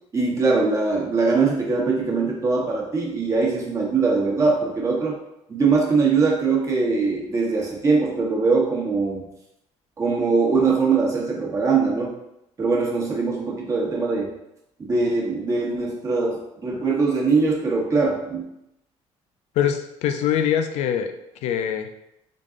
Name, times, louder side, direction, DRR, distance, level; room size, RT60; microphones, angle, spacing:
voice 1, 0.1-5.2 5.5-9.2 10.0-12.1 12.6-14.3 14.8-18.4, right 4 dB, 25° right, -2 dB, 1.0 m, -22 dB
voice 2, 19.6-21.1 21.4-21.9, left 9 dB, 80° left, 7 dB, 0.5 m, -23 dB
3.8 x 3.7 x 3.7 m, 0.83 s
cardioid pair, 155°, 11 cm